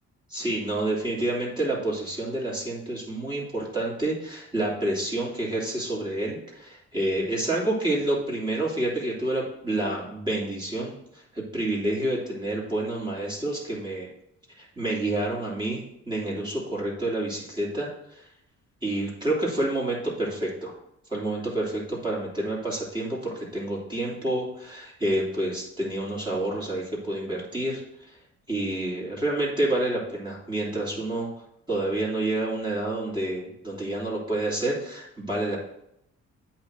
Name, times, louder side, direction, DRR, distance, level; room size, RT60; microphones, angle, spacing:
voice 1, 0.3-14.1 14.6-17.9 18.1-18.3 18.8-20.7 21.1-27.8 28.5-31.3 31.7-35.6, right 1 dB, 15° right, -5 dB, 3.0 m, -28 dB
8.4 x 3.0 x 6.3 m, 0.78 s
cardioid pair, 90°, 30 cm